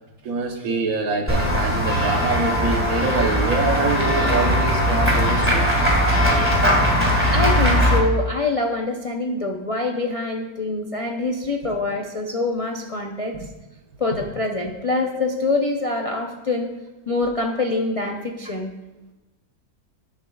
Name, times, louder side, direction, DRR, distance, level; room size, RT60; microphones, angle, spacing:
voice 1, 0.2-5.7, right 3 dB, 65° right, 3 dB, 1.4 m, -25 dB
Run / Walk footsteps / Bell, 1.3-8.0, equal, 10° right, 1.8 m, -19 dB
voice 2, 7.3-13.4 14.0-16.7 17.1-18.7, left 2 dB, 40° left, 1 dB, 0.4 m, -25 dB
11.0 x 10.0 x 2.3 m, 1.1 s
omnidirectional pair, 1.6 m